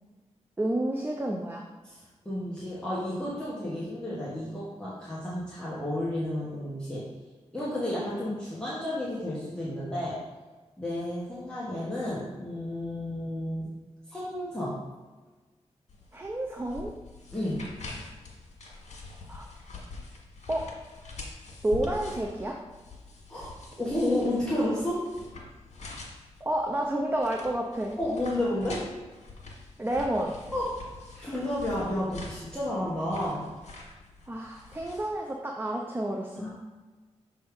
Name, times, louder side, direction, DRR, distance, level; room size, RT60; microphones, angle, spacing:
voice 1, 0.6-1.6 16.1-16.9 19.3-19.5 20.5-20.7 21.6-22.6 26.4-28.0 29.8-30.3 34.3-36.5, right 1 dB, 20° right, 0 dB, 0.5 m, -30 dB
voice 2, 1.8-7.1 7.5-10.2 10.8-13.7 14.1-14.8 17.3-17.6 23.3-23.5 23.8-25.1 28.0-28.9 30.5-30.6 31.1-33.4 36.3-36.5, left 1 dB, 5° left, -9 dB, 1.3 m, -31 dB
sound 1, 15.9-35.1, left 3 dB, 85° left, 1.7 m, -45 dB
6.3 x 3.5 x 4.8 m, 1.3 s
wide cardioid pair, 150°, 12 cm